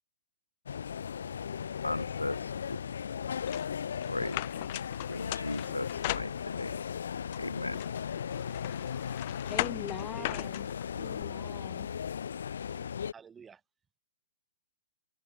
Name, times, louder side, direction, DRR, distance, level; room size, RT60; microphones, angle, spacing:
sound 1, 0.7-13.1, left 7 dB, 60° left, 2.1 m, -37 dB
voice 1, 1.8-2.8 4.0-4.4 5.1-6.8 7.4-7.8, left 2 dB, 85° left, 0.6 m, -36 dB
sound 2, 3.5-6.8 7.3-11.2, left 19 dB, 40° left, 2.4 m, -39 dB
voice 2, 9.5-10.7 10.9-11.9, left 8 dB, 15° left, 0.6 m, -41 dB
voice 3, 10.2-10.5 12.7-13.6, right 6 dB, 15° right, 3.5 m, -51 dB
figure-of-eight pair, 115°, 0 cm